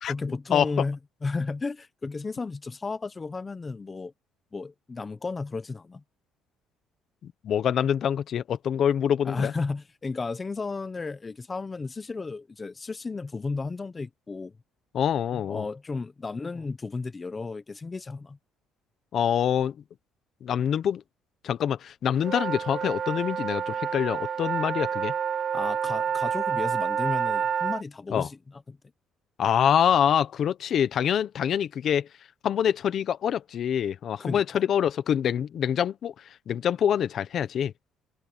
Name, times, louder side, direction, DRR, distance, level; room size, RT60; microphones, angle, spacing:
voice 1, 0.1-4.1 4.5-6.0 9.2-14.5 15.3-18.4 25.4-28.4 28.7-28.8 34.2-34.6, left 4 dB, 20° left, 0.7 m, -33 dB
voice 2, 7.2-9.5 14.9-15.6 19.1-19.7 20.4-21.0 21.4-25.1 28.1-28.3 29.4-32.1 32.4-36.1 36.5-37.7, left 9 dB, 45° left, 1.0 m, -25 dB
sound 1, 22.2-27.8, right 7 dB, 35° right, 0.4 m, -28 dB
cardioid pair, 155°, 0 cm